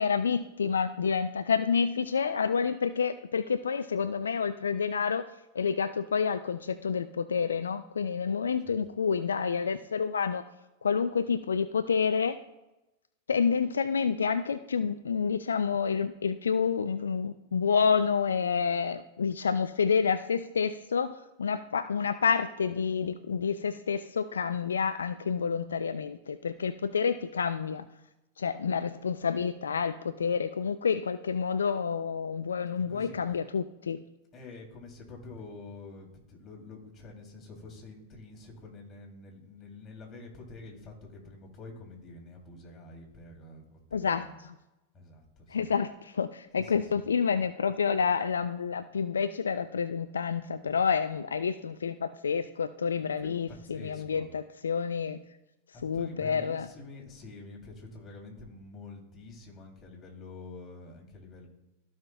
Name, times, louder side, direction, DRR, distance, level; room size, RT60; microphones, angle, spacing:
voice 1, 0.0-5.2 5.5-10.4 10.8-12.4 13.3-27.8 28.4-34.0 43.9-44.5 45.5-55.2 55.8-56.7, left 6 dB, 80° left, 12 dB, 0.4 m, -29 dB
voice 2, 32.9-33.2 34.3-44.4 44.9-45.7 46.6-47.0 53.2-54.3 55.7-61.5, left 2 dB, 30° left, 0 dB, 2.8 m, -47 dB
14.5 x 5.7 x 2.3 m, 0.98 s
hypercardioid pair, 100°, 0 cm